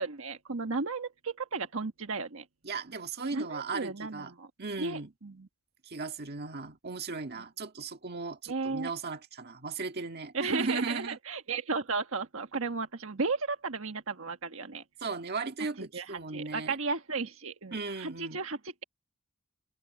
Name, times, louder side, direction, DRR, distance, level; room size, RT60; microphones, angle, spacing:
voice 1, 0.0-2.4 3.3-4.5 4.8-5.5 8.5-8.9 10.3-14.8 15.8-18.8, right 4 dB, 70° right, 1.5 m, -34 dB
voice 2, 2.6-4.3 4.6-5.1 5.9-11.2 15.0-16.8 17.7-18.4, right 4 dB, 50° right, 1.8 m, -36 dB
open air
head